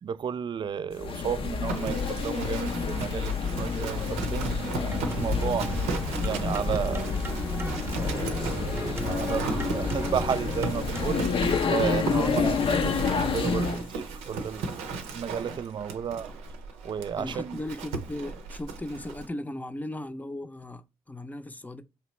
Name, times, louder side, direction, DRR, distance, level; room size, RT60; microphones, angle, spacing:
voice 1, 0.0-5.7 6.2-7.2 7.9-12.7 13.3-14.8 15.1-16.3 16.8-17.6, right 7 dB, 45° right, 0.3 m, -33 dB
sound 1, 0.9-13.9, left 5 dB, 55° left, 0.5 m, -29 dB
Livestock farm animals working animals, 1.7-19.3, right 4 dB, 90° right, 0.6 m, -36 dB
sound 2, 4.9-11.2, right 2 dB, 20° right, 0.7 m, -35 dB
voice 2, 12.1-13.1 17.2-21.8, left 1 dB, 15° left, 0.6 m, -36 dB
4.4 x 2.9 x 3.1 m
supercardioid pair, 55°, 11 cm